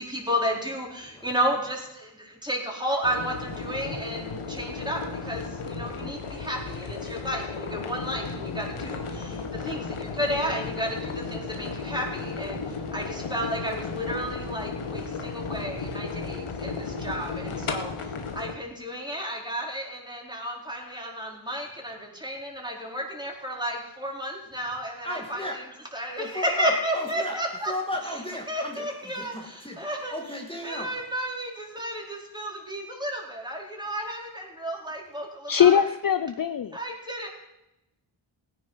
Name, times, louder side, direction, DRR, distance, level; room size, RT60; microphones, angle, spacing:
voice 1, 0.0-5.0 5.2-12.6 12.9-17.9 18.3-25.4 25.9-27.7 28.5-29.3 29.8-30.1 30.6-35.7 36.7-37.3, equal, 10° right, -1 dB, 4.4 m, -32 dB
voice 2, 1.0-1.4 8.6-9.1 10.4-10.7 11.8-12.1 25.0-25.6 26.1-31.1, left 1 dB, 10° left, 1 dB, 2.3 m, -36 dB
sound 1, 3.0-18.5, left 4 dB, 80° left, 1.7 m, -34 dB
voice 3, 35.5-36.8, left 8 dB, 45° left, 11 dB, 0.6 m, -21 dB
17.0 x 10.0 x 5.7 m, 0.91 s
cardioid pair, 65°, 49 cm